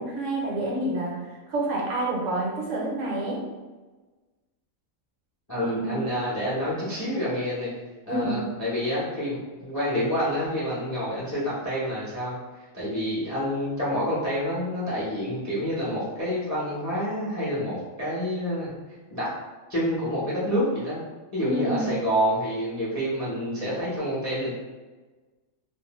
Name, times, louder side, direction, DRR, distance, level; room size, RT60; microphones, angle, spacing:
voice 1, 0.0-3.5 5.5-6.0 8.1-8.4 21.5-21.9, right 1 dB, 65° right, -3 dB, 0.9 m, -28 dB
voice 2, 5.5-7.7 8.1-18.7 19.1-19.3 19.7-21.0 21.3-24.5, equal, 25° left, -8 dB, 0.3 m, -28 dB
2.5 x 2.1 x 2.9 m, 1.3 s
omnidirectional pair, 1.5 m